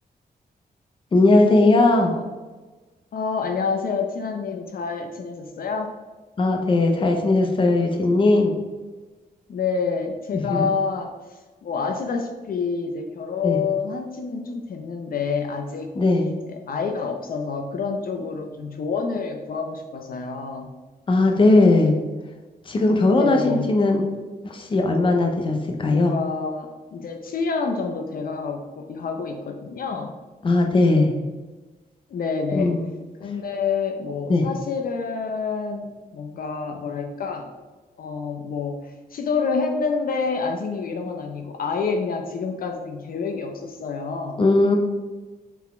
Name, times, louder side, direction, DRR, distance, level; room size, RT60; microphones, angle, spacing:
voice 1, 1.1-2.1 6.4-8.5 10.3-10.7 13.4-13.6 16.0-16.3 21.1-21.9 22.7-24.1 24.4-26.1 30.4-31.1 32.5-32.8 34.3-34.4 44.4-44.8, left 2 dB, 35° left, 2 dB, 0.8 m, -18 dB
voice 2, 3.1-5.9 9.5-11.1 11.6-15.9 16.5-20.7 23.1-23.7 25.9-30.1 32.1-32.7 33.2-37.5 38.0-44.4, left 5 dB, 65° left, 4 dB, 0.6 m, -28 dB
5.9 x 4.1 x 4.3 m, 1.2 s
wide cardioid pair, 170°, 16 cm